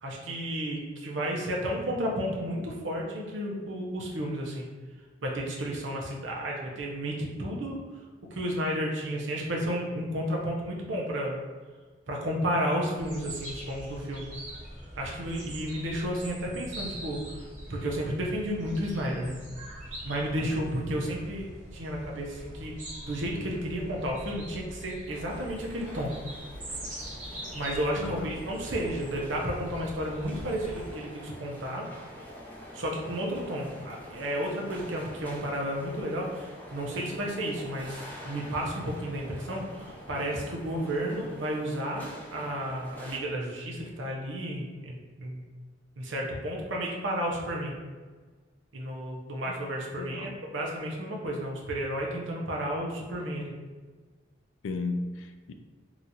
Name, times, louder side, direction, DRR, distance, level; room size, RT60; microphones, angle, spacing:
voice 1, 0.0-4.7 5.2-7.8 8.3-11.4 12.1-14.2 15.0-19.4 20.0-22.7 23.0-26.1 27.5-31.9 32.7-45.4 46.0-47.7 48.7-53.5, equal, 75° right, -2 dB, 0.7 m, -32 dB
sound 1, 13.0-31.0, right 1 dB, 40° right, 1.0 m, -43 dB
sound 2, 25.1-43.2, equal, 10° left, 0.5 m, -46 dB
voice 2, 28.0-28.3 49.4-49.5 49.9-50.3 54.6-55.5, left 3 dB, 85° left, 7 dB, 0.3 m, -34 dB
3.0 x 2.4 x 4.0 m, 1.4 s
head